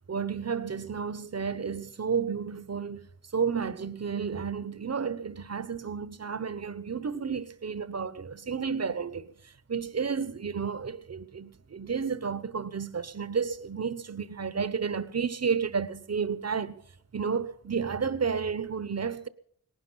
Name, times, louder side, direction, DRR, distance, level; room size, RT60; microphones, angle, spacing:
voice 1, 0.1-3.1 3.3-16.8 17.1-19.3, right 6 dB, 40° right, 1.0 m, -31 dB
18.0 x 11.5 x 5.7 m
cardioid pair, 50°, 38 cm